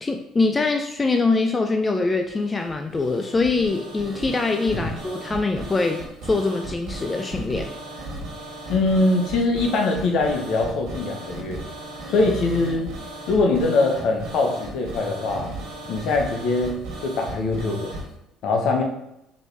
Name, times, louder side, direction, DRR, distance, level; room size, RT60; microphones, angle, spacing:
voice 1, 0.0-7.7, left 3 dB, 25° left, 4 dB, 0.4 m, -23 dB
sound 1, 2.2-18.1, right 2 dB, 75° right, 1.3 m, -36 dB
voice 2, 8.7-11.6 12.1-12.9 13.3-15.5 15.9-17.9 18.4-18.8, left 3 dB, 65° left, 2 dB, 0.9 m, -22 dB
4.1 x 3.1 x 3.3 m, 0.84 s
hypercardioid pair, 65°, 0 cm